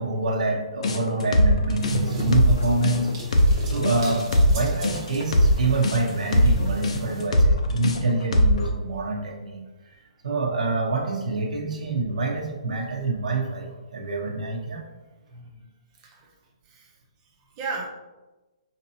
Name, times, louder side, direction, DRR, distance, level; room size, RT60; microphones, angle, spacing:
voice 1, 0.0-3.1 3.6-9.6 10.2-14.8, right 3 dB, 90° right, 0 dB, 0.9 m, -26 dB
sound 1, 0.8-8.7, left 1 dB, 60° left, 0.6 m, -20 dB
sound 2, 1.8-7.3, right 2 dB, 35° right, 0.9 m, -35 dB
voice 2, 17.6-17.9, right 4 dB, 15° right, 0 dB, 0.5 m, -35 dB
5.1 x 2.7 x 2.7 m, 1.1 s
hypercardioid pair, 175°, 4 cm